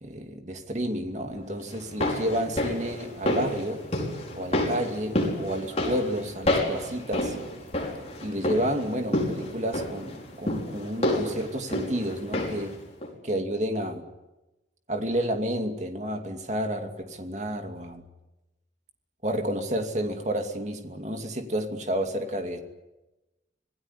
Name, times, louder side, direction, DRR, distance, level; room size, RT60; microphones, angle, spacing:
voice 1, 0.0-3.8 4.3-7.4 8.2-12.7 13.2-14.0 14.9-18.0 19.2-22.6, equal, 40° right, 5 dB, 2.6 m, -30 dB
sound 1, 1.7-12.7 13.0-13.1, left 1 dB, 35° left, 5.2 m, -29 dB
26.5 x 18.5 x 10.0 m, 1.0 s
head